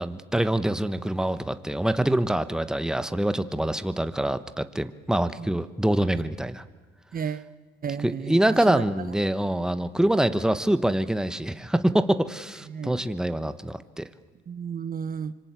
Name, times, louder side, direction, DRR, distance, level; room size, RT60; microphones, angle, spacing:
voice 1, 0.0-6.6 8.0-14.1, right 1 dB, 5° right, 11 dB, 1.2 m, -25 dB
voice 2, 7.1-7.5 7.8-8.9 12.7-13.0 14.5-15.3, right 7 dB, 45° right, 14 dB, 1.0 m, -33 dB
25.5 x 24.0 x 8.3 m, 1.4 s
cardioid pair, 90°, 20 cm